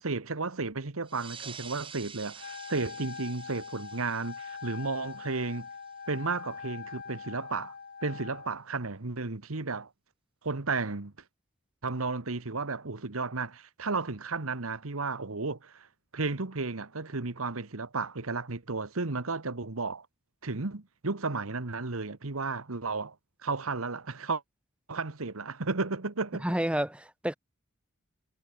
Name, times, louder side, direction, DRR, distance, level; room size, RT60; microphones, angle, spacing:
voice 1, 0.0-5.7 6.1-7.7 8.0-9.9 10.4-11.1 11.8-15.9 16.1-20.1 20.4-23.1 23.4-24.4 24.9-26.4, right 3 dB, 85° right, 1.4 m, -33 dB
sound 1, 1.0-6.1, right 6 dB, 25° right, 3.2 m, -48 dB
Wind instrument woodwind instrument, 2.4-8.5, left 5 dB, 45° left, 1.0 m, -43 dB
voice 2, 26.4-27.3, right 1 dB, 5° right, 1.0 m, -29 dB
head